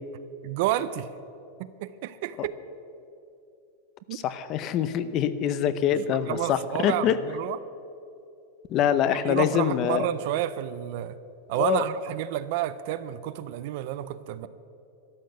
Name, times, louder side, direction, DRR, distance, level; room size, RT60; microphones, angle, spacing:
voice 1, 0.4-1.1 1.6-2.5 4.1-4.2 6.2-7.6 9.2-11.2 11.5-14.5, right 13 dB, 45° right, 15 dB, 0.5 m, -30 dB
voice 2, 4.1-7.2 8.7-10.1 11.5-11.9, left 9 dB, 30° left, 13 dB, 0.6 m, -25 dB
13.0 x 11.5 x 7.7 m, 2.7 s
supercardioid pair, 175°, 0 cm